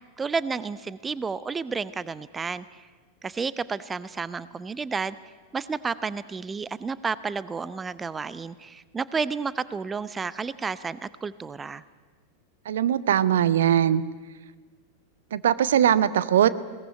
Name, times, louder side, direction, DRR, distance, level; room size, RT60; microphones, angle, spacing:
voice 1, 0.2-2.9 3.2-5.2 5.5-11.8, right 5 dB, 15° right, 17 dB, 0.6 m, -31 dB
voice 2, 12.7-14.0 15.3-16.5, right 10 dB, 60° right, 17 dB, 0.7 m, -20 dB
21.0 x 18.5 x 9.4 m, 1.4 s
figure-of-eight pair, 90°, 0 cm